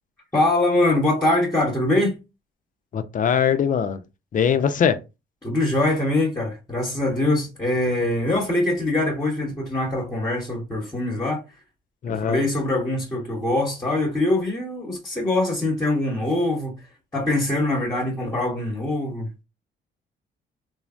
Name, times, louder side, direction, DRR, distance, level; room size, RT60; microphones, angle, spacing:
voice 1, 0.3-2.2 5.4-11.4 12.1-16.8 17.1-19.3, left 1 dB, 15° left, 1.0 m, -23 dB
voice 2, 2.9-4.0 4.3-5.0 12.0-12.4, left 7 dB, 40° left, 0.5 m, -21 dB
3.1 x 2.0 x 2.4 m
cardioid pair, 90°, 20 cm